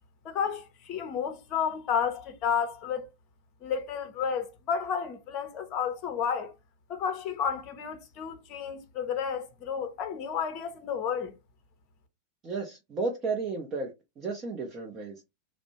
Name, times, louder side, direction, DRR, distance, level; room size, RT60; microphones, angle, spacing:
voice 1, 0.2-3.1 3.6-6.5 6.9-11.3, left 7 dB, 40° left, 0.5 m, -31 dB
voice 2, 12.4-13.9 14.2-15.2, right 3 dB, 30° right, 0.6 m, -33 dB
2.5 x 2.0 x 2.8 m
figure-of-eight pair, 90°, 0 cm